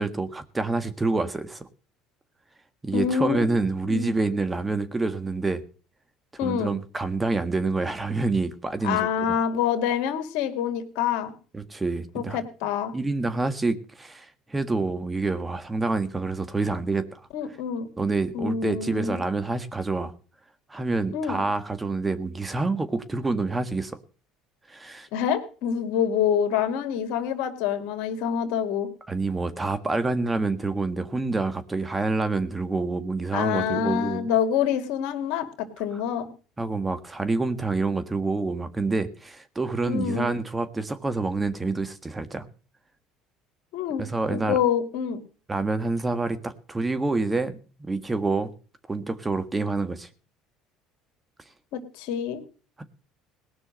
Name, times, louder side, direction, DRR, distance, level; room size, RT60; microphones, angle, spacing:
voice 1, 0.0-1.7 2.8-5.6 6.4-9.1 11.5-12.4 12.9-17.2 18.0-20.1 20.7-24.0 24.7-25.1 29.1-34.3 36.6-42.4 44.0-44.6 45.5-47.5 47.8-48.5 48.9-50.1 52.8-52.9, right 3 dB, 20° right, 11 dB, 1.6 m, -27 dB
voice 2, 2.9-3.5 3.8-4.1 6.4-6.7 8.8-11.3 12.1-12.9 17.3-17.9 18.3-19.2 21.1-21.4 25.1-28.9 33.3-36.3 39.9-40.3 43.7-45.2 51.7-52.4, left 8 dB, 75° left, 7 dB, 2.3 m, -26 dB
18.5 x 6.2 x 7.6 m, 0.39 s
supercardioid pair, 85°, 0 cm